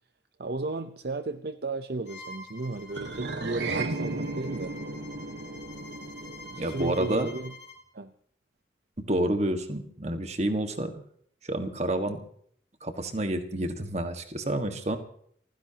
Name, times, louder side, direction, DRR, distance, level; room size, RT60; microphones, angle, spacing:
voice 1, 0.4-4.7 6.5-7.5 7.9-8.1, right 2 dB, 55° right, 10 dB, 0.7 m, -34 dB
Bowed string instrument, 2.1-7.8, left 1 dB, 75° left, 4.1 m, -47 dB
sound 1, 2.9-7.5, right 3 dB, 80° right, 1.6 m, -35 dB
voice 2, 6.6-7.3 9.1-11.0 11.4-12.2 12.8-15.0, right 1 dB, 35° right, 7 dB, 1.6 m, -29 dB
29.0 x 15.5 x 2.9 m, 0.62 s
head